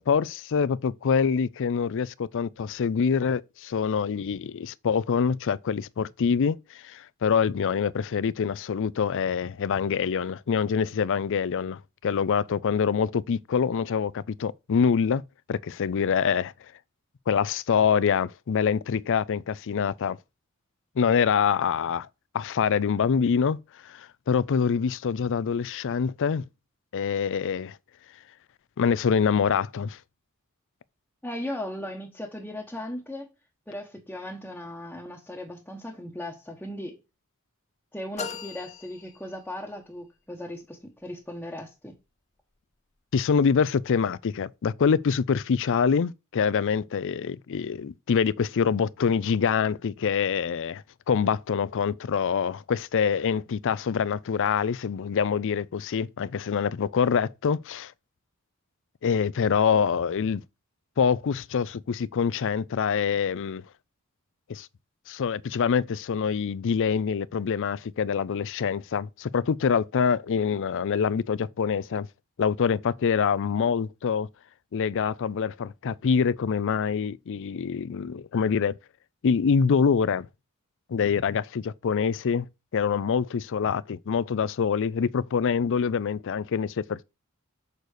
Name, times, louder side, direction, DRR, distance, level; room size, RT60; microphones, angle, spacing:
voice 1, 0.0-15.2 15.5-16.5 17.3-20.2 21.0-22.1 22.3-23.6 23.8-26.4 26.9-27.8 28.8-30.0 43.1-57.9 59.0-60.4 61.0-63.6 64.5-64.7 65.1-72.1 72.4-74.3 74.7-78.7 79.2-80.3 80.9-82.5 82.7-87.0, left 6 dB, 60° left, 0.4 m, -25 dB
voice 2, 31.2-33.3 33.7-37.0 37.9-41.9, left 1 dB, 5° left, 1.0 m, -37 dB
sound 1, 38.2-39.8, left 6 dB, 30° left, 0.7 m, -39 dB
6.6 x 4.0 x 6.4 m
head